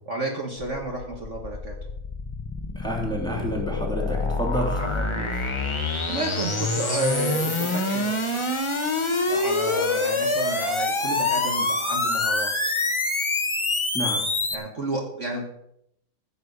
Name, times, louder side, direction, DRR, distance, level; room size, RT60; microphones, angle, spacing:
voice 1, 0.1-1.8 4.8-5.4 6.1-8.1 9.3-12.7 14.5-15.5, right 2 dB, 45° right, 1 dB, 1.9 m, -31 dB
sound 1, 0.6-14.5, left 2 dB, 20° left, 1.0 m, -26 dB
voice 2, 2.7-5.5 13.9-14.2, equal, ahead, -1 dB, 3.1 m, -30 dB
15.5 x 5.6 x 8.2 m, 0.78 s
omnidirectional pair, 1.8 m